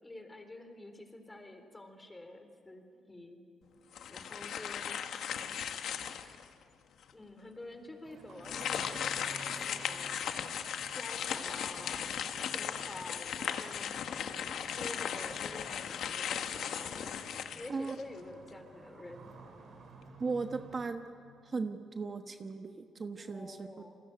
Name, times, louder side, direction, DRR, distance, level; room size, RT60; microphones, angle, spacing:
voice 1, 0.0-3.4 4.1-5.0 7.1-10.3 11.0-12.0 12.5-13.9 14.7-17.1 17.5-19.3 23.2-24.0, left 2 dB, 15° left, 7 dB, 4.0 m, -48 dB
sound 1, 3.9-6.5 7.0-7.1 8.4-18.2, left 8 dB, 70° left, 1.5 m, -37 dB
Livestock farm animals working animals, 8.0-20.9, right 4 dB, 60° right, 4.1 m, -54 dB
voice 2, 20.2-21.1 21.4-23.7, right 4 dB, 35° right, 7 dB, 1.2 m, -37 dB
29.5 x 21.0 x 9.2 m, 2.2 s
cardioid pair, 90°, 0 cm